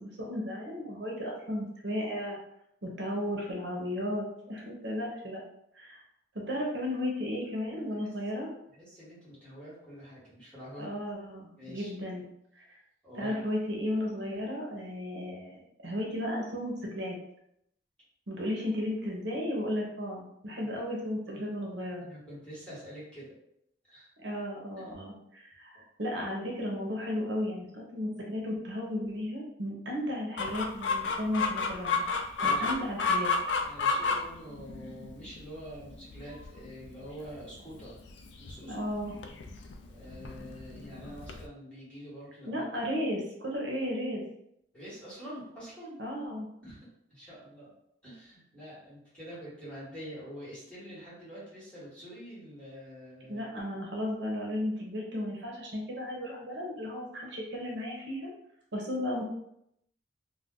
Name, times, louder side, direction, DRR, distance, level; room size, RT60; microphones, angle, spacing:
voice 1, 0.0-2.4 2.8-5.4 5.7-6.0 6.5-8.5 10.8-12.2 12.5-12.6 13.2-17.1 18.3-22.1 24.2-32.1 32.4-33.3 38.6-39.2 42.5-44.2 46.0-46.5 53.3-58.3 58.7-59.3, left 1 dB, 70° right, -2 dB, 0.7 m, -34 dB
voice 2, 7.7-8.1 8.7-10.9 11.6-11.9 13.0-13.3 22.0-23.4 23.9-24.1 24.8-24.9 25.7-25.8 32.4-32.8 33.6-38.0 38.4-38.7 39.9-42.6 44.7-46.0 46.6-47.7 48.0-53.5, equal, 5° left, -10 dB, 1.2 m, -46 dB
Chicken rooster, 30.4-41.5, left 4 dB, 75° left, 0.3 m, -32 dB
2.5 x 2.1 x 3.6 m, 0.77 s
head